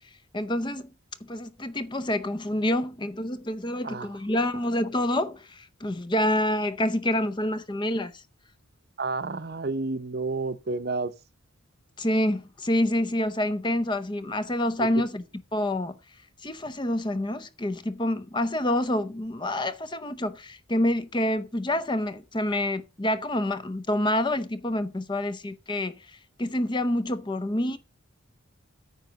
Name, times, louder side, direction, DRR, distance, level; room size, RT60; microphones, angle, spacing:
voice 1, 0.3-0.9 1.2-8.2 12.0-15.2 15.5-16.0 16.4-27.8, left 1 dB, 20° left, 0.6 m, -27 dB
voice 2, 9.0-11.1 14.8-14.9, right 3 dB, 45° right, 0.8 m, -30 dB
9.2 x 5.1 x 6.8 m
head